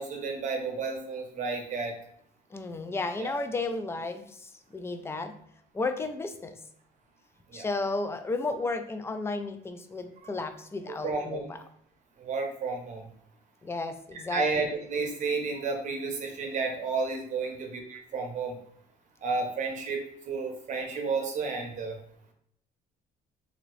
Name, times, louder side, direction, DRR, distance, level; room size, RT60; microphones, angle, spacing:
voice 1, 0.0-1.9 3.2-3.3 7.5-7.7 10.8-11.4 12.2-13.1 14.1-18.6 19.2-22.0, right 4 dB, 45° right, 2 dB, 0.8 m, -32 dB
voice 2, 2.5-5.3 5.7-6.6 7.5-11.6 13.6-14.7, left 3 dB, 15° left, 8 dB, 0.3 m, -33 dB
2.9 x 2.6 x 3.0 m, 0.70 s
cardioid pair, 110°, 17 cm